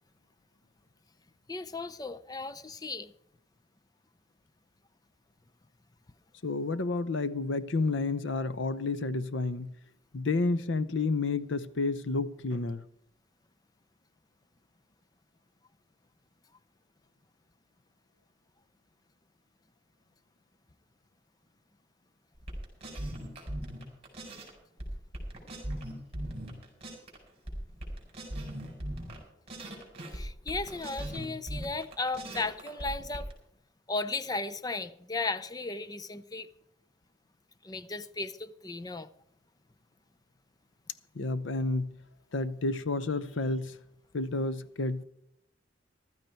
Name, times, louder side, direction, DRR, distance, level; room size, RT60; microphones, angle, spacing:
voice 1, 1.5-3.1 30.1-33.3 33.9-36.5 37.6-39.1, left 3 dB, 20° left, 0.5 m, -35 dB
voice 2, 6.4-9.7 10.1-12.8 41.1-41.9 42.3-43.8 44.1-45.0, left 3 dB, 75° left, 0.8 m, -30 dB
sound 1, 22.4-24.5 24.8-27.2 27.5-29.2 29.5-33.3, right 1 dB, 30° right, 4.4 m, -39 dB
14.5 x 12.5 x 4.5 m
head